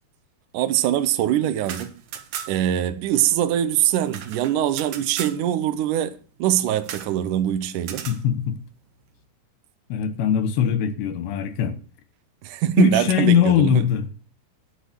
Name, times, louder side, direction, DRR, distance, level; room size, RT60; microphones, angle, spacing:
voice 1, 0.5-2.0 2.5-8.0 12.4-13.8, right 11 dB, 85° right, 1.8 m, -23 dB
sound 1, 1.5-2.8 3.0-3.1 3.4-5.4 6.8-7.2 7.8-8.2, right 9 dB, 70° right, 2.2 m, -36 dB
voice 2, 8.1-8.6 9.9-11.8 12.8-14.1, left 9 dB, 80° left, 3.3 m, -21 dB
10.5 x 6.6 x 7.8 m
omnidirectional pair, 5.0 m